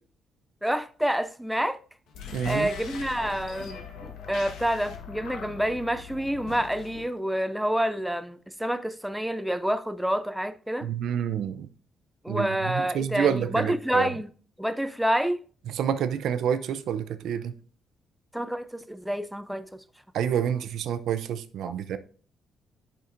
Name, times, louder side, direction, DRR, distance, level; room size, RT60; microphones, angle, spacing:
voice 1, 0.6-1.8 2.4-10.9 12.2-14.3 14.6-15.4 18.3-19.8 21.6-21.7, equal, ahead, 0.4 m, -28 dB
sound 1, 2.1-7.1, left 6 dB, 80° left, 1.1 m, -41 dB
voice 2, 2.3-2.7 10.8-11.7 12.3-14.1 15.8-17.5 20.1-22.0, right 8 dB, 75° right, 0.5 m, -28 dB
8.2 x 5.7 x 2.5 m
cardioid pair, 90°, 0 cm